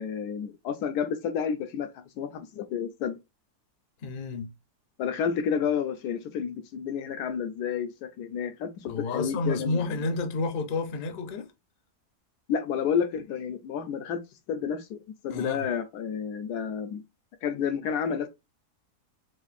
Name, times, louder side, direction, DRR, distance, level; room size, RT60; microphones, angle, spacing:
voice 1, 0.0-3.2 5.0-10.0 12.5-14.2 14.5-15.0 15.2-17.0 17.4-18.3, left 7 dB, 80° left, 1.1 m, -30 dB
voice 2, 4.0-4.5 8.9-11.5 15.3-15.7, left 3 dB, 55° left, 0.6 m, -30 dB
4.2 x 2.5 x 2.5 m
omnidirectional pair, 1.7 m